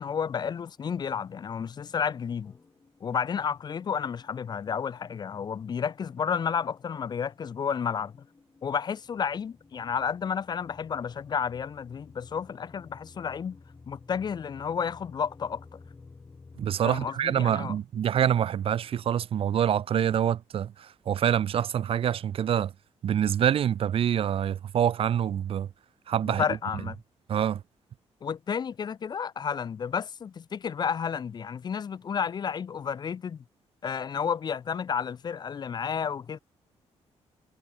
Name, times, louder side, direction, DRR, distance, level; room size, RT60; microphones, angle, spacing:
voice 1, 0.0-2.5 3.0-8.1 8.6-13.6 13.9-15.6 16.8-17.8 26.2-27.0 28.2-33.4 33.8-36.4, left 7 dB, 40° left, 0.7 m, -31 dB
sound 1, 2.4-17.1, left 4 dB, 25° left, 2.8 m, -54 dB
voice 2, 16.6-22.7 23.0-25.7 26.1-26.4 27.3-27.6, right 9 dB, 55° right, 1.0 m, -26 dB
cardioid pair, 150°, 11 cm